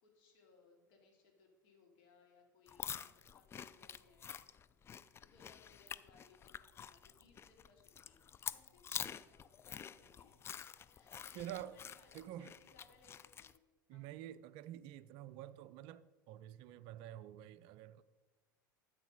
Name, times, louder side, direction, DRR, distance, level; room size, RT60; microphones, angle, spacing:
voice 1, 0.0-4.3 5.2-8.2 8.5-12.2 12.6-13.5 13.9-14.1, left 4 dB, 55° left, 2.9 m, -68 dB
sound 1, 2.7-13.6, left 8 dB, 25° left, 0.4 m, -48 dB
voice 2, 11.3-11.8 12.1-12.5 13.9-18.0, right 12 dB, 50° right, 0.4 m, -49 dB
13.0 x 8.1 x 3.9 m
figure-of-eight pair, 75°, 11 cm